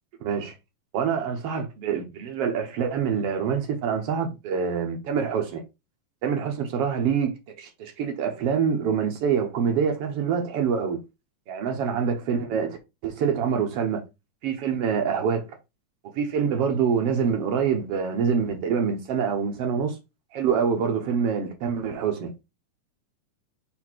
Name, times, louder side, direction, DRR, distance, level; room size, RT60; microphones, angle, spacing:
voice 1, 0.2-0.5 0.9-5.6 6.2-11.0 11.5-12.8 13.0-14.0 14.4-15.5 16.1-20.0 20.3-22.3, right 7 dB, 70° right, 1.4 m, -25 dB
5.1 x 4.3 x 4.4 m
omnidirectional pair, 3.8 m